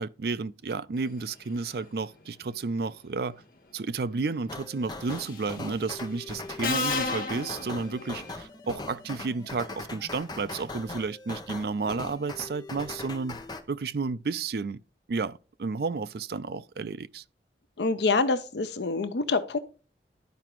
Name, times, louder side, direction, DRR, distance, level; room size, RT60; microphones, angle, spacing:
voice 1, 0.0-3.4 3.7-13.4 13.7-14.8 15.1-17.2, right 4 dB, 60° right, 0.4 m, -32 dB
sound 1, 4.5-13.6, left 2 dB, 25° left, 0.8 m, -40 dB
Subway metro underground, 5.1-5.5 6.6-8.3, left 4 dB, 55° left, 1.2 m, -31 dB
voice 2, 17.8-19.6, left 3 dB, 75° left, 0.6 m, -26 dB
12.5 x 4.9 x 3.0 m
head